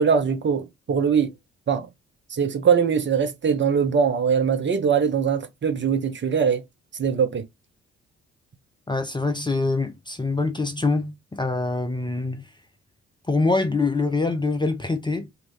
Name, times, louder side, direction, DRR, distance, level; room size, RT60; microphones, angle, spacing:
voice 1, 0.0-1.3 1.7-1.9 2.3-6.6 6.9-7.4, right 6 dB, 35° right, 0.8 m, -22 dB
voice 2, 8.9-12.5 13.3-15.3, left 3 dB, 15° left, 0.6 m, -24 dB
3.1 x 2.8 x 3.3 m
figure-of-eight pair, 40°, 35 cm